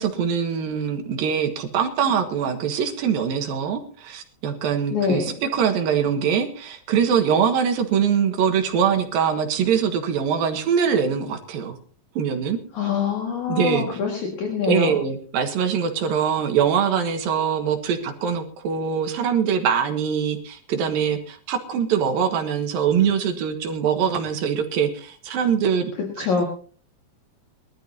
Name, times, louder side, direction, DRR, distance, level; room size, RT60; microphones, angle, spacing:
voice 1, 0.0-11.8 12.2-12.6 13.5-14.0 14.6-25.9 26.2-26.4, right 7 dB, 85° right, 5 dB, 3.3 m, -23 dB
voice 2, 4.9-5.2 12.7-14.9 26.2-26.4, left 6 dB, 60° left, 0 dB, 3.1 m, -24 dB
23.0 x 12.5 x 2.7 m, 0.43 s
omnidirectional pair, 4.0 m